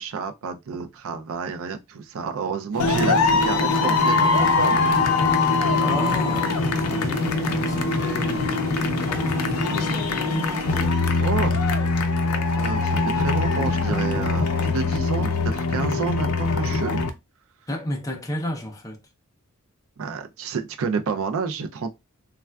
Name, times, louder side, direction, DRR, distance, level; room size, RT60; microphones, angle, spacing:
voice 1, 0.0-4.9 10.8-11.6 12.5-17.0 20.0-21.9, right 5 dB, 65° right, 0.4 m, -30 dB
sound 1, 2.7-10.9, left 1 dB, 50° right, 1.2 m, -30 dB
sound 2, 2.8-17.1, left 3 dB, 90° left, 0.5 m, -23 dB
voice 2, 5.7-6.5 6.9-9.8 17.7-19.0, left 1 dB, 15° left, 0.5 m, -32 dB
3.4 x 2.3 x 2.2 m
head